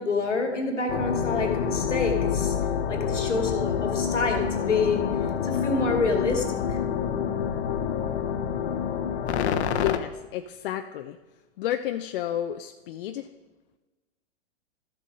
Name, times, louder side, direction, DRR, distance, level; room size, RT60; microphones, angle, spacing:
voice 1, 0.0-2.6 2.9-6.8, left 3 dB, 90° left, 3 dB, 2.2 m, -27 dB
sound 1, 0.9-10.0, left 7 dB, 65° left, 1.0 m, -27 dB
voice 2, 9.7-11.2 11.6-13.3, left 12 dB, 50° left, 7 dB, 0.6 m, -31 dB
13.0 x 7.7 x 5.2 m, 1.2 s
hypercardioid pair, 115°, 35 cm